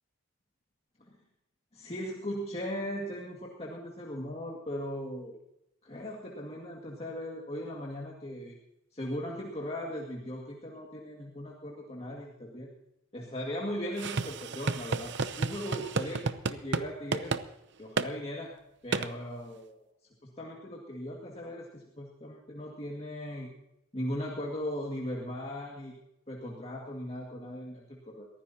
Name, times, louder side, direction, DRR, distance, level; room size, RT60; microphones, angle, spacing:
voice 1, 1.7-5.4 5.8-8.6 8.9-12.7 13.1-17.3 17.8-18.5 18.8-19.8 20.4-23.5 23.9-26.0 26.3-28.3, equal, 30° left, -2 dB, 2.0 m, -38 dB
sound 1, 14.0-16.8 17.1-17.4 18.0-18.1 18.9-19.1, right 4 dB, 55° right, 0.7 m, -31 dB
22.5 x 15.0 x 2.8 m, 0.84 s
head